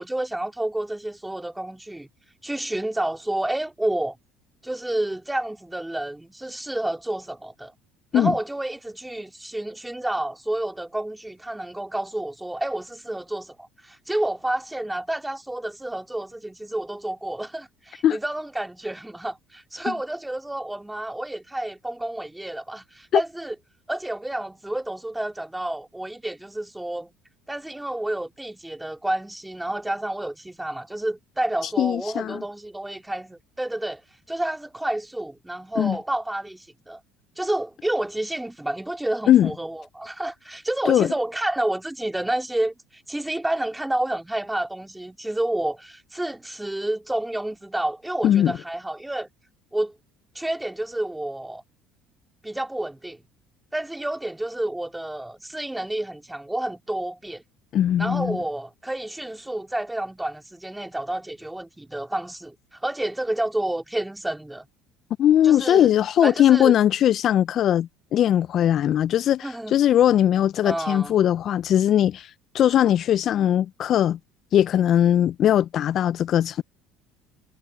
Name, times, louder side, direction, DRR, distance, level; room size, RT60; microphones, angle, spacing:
voice 1, 0.0-2.1 2.4-4.2 4.6-7.7 8.1-23.5 23.9-27.1 27.5-34.0 34.3-37.0 37.4-49.3 49.7-50.0 50.3-51.6 52.4-53.2 53.7-57.4 58.0-64.7 65.4-65.9 66.2-66.8 69.4-69.7 70.6-71.2, right 1 dB, 10° right, 2.4 m, -29 dB
voice 2, 31.8-32.4 35.8-36.0 39.3-39.5 40.9-41.1 48.2-48.5 57.7-58.4 65.2-74.2 74.5-76.6, left 11 dB, 55° left, 0.4 m, -20 dB
hypercardioid pair, 75°, 0 cm